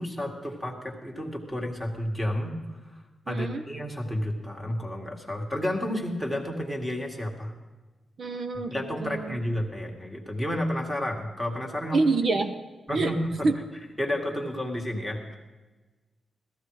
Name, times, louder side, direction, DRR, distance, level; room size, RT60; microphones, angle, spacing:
voice 1, 0.0-7.5 8.7-12.1 12.9-13.5 14.0-15.4, left 1 dB, 5° right, 2 dB, 2.0 m, -31 dB
voice 2, 3.3-3.6 8.2-9.4 11.9-12.6 12.9-13.1 13.4-13.5, right 3 dB, 45° right, 7 dB, 0.7 m, -26 dB
17.5 x 14.0 x 4.9 m, 1.2 s
wide cardioid pair, 160°, 0 cm